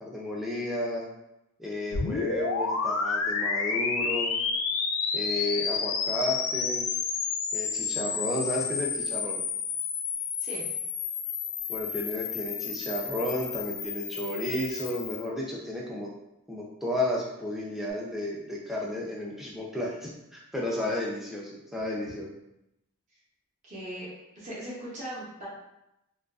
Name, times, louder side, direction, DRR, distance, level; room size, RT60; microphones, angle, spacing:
voice 1, 0.0-1.0 1.6-4.3 5.1-6.9 7.5-9.4 11.7-16.1 16.5-22.3, left 1 dB, ahead, -4 dB, 0.3 m, -32 dB
sound 1, 1.9-15.2, left 5 dB, 75° left, 0.3 m, -30 dB
voice 2, 23.7-24.1 24.4-25.5, right 1 dB, 35° right, -7 dB, 0.7 m, -39 dB
2.4 x 2.3 x 2.3 m, 0.87 s
head